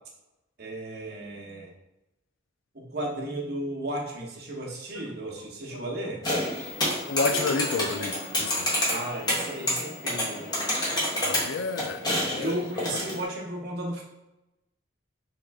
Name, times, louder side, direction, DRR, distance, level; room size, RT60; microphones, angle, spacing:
voice 1, 0.6-1.7 2.7-6.2 8.9-10.5 12.4-14.0, right 1 dB, 50° right, -1 dB, 0.9 m, -34 dB
sound 1, 6.2-13.2, left 1 dB, 20° left, 0.9 m, -29 dB
voice 2, 7.1-8.7 11.2-12.5, left 4 dB, 80° left, 8 dB, 0.4 m, -30 dB
3.6 x 3.2 x 3.4 m, 0.94 s
head